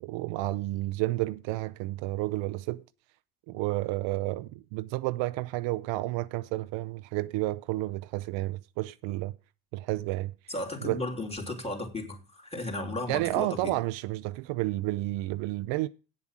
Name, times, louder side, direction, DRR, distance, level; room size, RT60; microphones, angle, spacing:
voice 1, 0.0-2.8 3.5-9.3 9.7-10.3 10.8-11.0 13.1-15.9, right 18 dB, 65° right, 0.7 m, -31 dB
voice 2, 10.5-13.7, left 2 dB, 15° left, 3.2 m, -35 dB
8.8 x 7.3 x 7.5 m
supercardioid pair, 90°, 47 cm